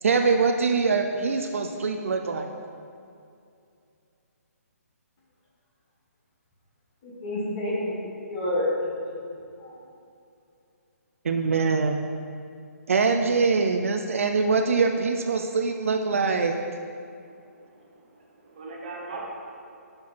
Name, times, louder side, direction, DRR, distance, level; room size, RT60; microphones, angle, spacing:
voice 1, 0.0-2.5 11.2-12.0 12.9-16.6, right 4 dB, 55° right, 4 dB, 0.5 m, -23 dB
voice 2, 7.0-9.3 9.6-9.8, left 1 dB, 25° left, -5 dB, 1.3 m, -29 dB
voice 3, 17.2-19.3, right 3 dB, 35° right, -3 dB, 1.2 m, -41 dB
7.3 x 6.1 x 4.2 m, 2.5 s
hypercardioid pair, 175°, 9 cm